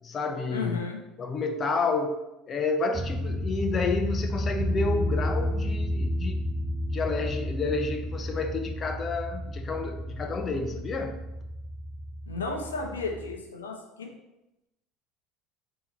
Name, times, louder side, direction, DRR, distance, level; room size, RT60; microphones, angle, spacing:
voice 1, 0.0-0.8 1.2-2.2 2.5-6.5 6.9-11.2, left 4 dB, 35° left, 5 dB, 0.5 m, -30 dB
voice 2, 0.5-1.0 12.3-14.1, left 4 dB, 90° left, 2 dB, 0.6 m, -33 dB
sound 1, 2.9-13.4, equal, 25° right, 0.6 m, -32 dB
Bass guitar, 4.6-10.8, left 4 dB, 65° right, 0.6 m, -38 dB
3.9 x 2.8 x 4.1 m, 0.93 s
hypercardioid pair, 70°, 0 cm